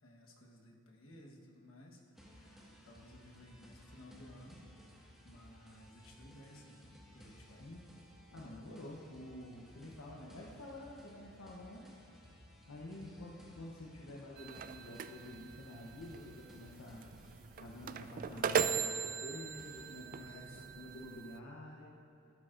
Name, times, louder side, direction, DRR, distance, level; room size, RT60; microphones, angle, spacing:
voice 1, 0.0-2.0 2.3-4.6 5.2-6.8 7.1-7.7 20.2-20.8, left 1 dB, 70° left, -1 dB, 1.3 m, -57 dB
sound 1, 2.2-20.0, equal, ahead, 1.5 m, -59 dB
voice 2, 7.6-8.0 8.3-11.9 12.7-17.1 17.6-22.0, left 1 dB, 85° left, -2 dB, 0.9 m, -49 dB
sound 2, 14.4-21.4, right 6 dB, 40° right, 0.3 m, -39 dB
12.0 x 12.0 x 2.5 m, 2.5 s
head